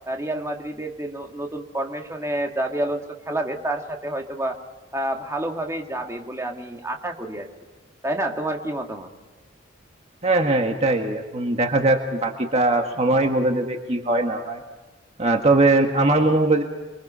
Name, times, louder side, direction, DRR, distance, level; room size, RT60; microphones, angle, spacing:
voice 1, 0.1-4.6 4.9-7.5 8.0-9.1, right 1 dB, 15° right, 2 dB, 2.0 m, -29 dB
voice 2, 10.2-14.6 15.2-16.6, right 2 dB, 35° right, 3 dB, 1.6 m, -20 dB
29.0 x 23.0 x 5.6 m, 1.3 s
head